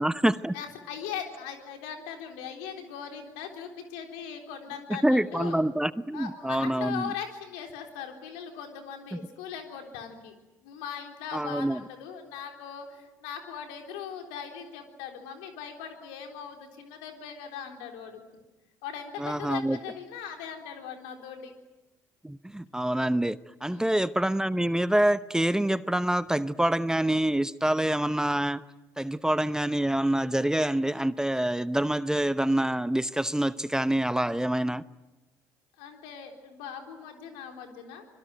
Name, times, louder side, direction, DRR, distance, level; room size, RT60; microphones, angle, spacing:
voice 1, 0.0-0.5 4.9-7.1 11.3-11.8 19.2-19.8 22.2-28.6 29.0-34.8, right 1 dB, 5° right, 15 dB, 0.8 m, -26 dB
voice 2, 0.5-5.6 6.1-10.3 10.6-18.2 18.8-21.5 23.7-24.0 35.8-38.1, left 8 dB, 80° left, 3 dB, 3.8 m, -40 dB
25.5 x 22.0 x 9.2 m, 1.1 s
hypercardioid pair, 60°, 9 cm